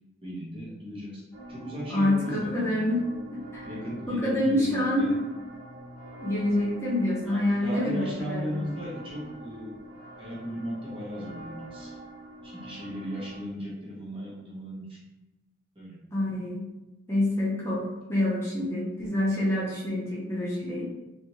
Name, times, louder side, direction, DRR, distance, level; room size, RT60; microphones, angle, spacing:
voice 1, 0.2-1.2 1.5-2.9 3.6-5.2 7.3-9.8 10.2-11.9 12.4-15.0 15.7-16.1, equal, 30° right, -6 dB, 0.8 m, -36 dB
sound 1, 1.3-13.4, right 1 dB, 85° right, 1.0 m, -45 dB
voice 2, 1.9-3.0 3.3-3.7 4.1-5.1 6.2-8.6 16.1-16.6 17.1-20.8, left 1 dB, 15° left, -8 dB, 0.7 m, -27 dB
2.6 x 2.5 x 3.0 m, 1.0 s
head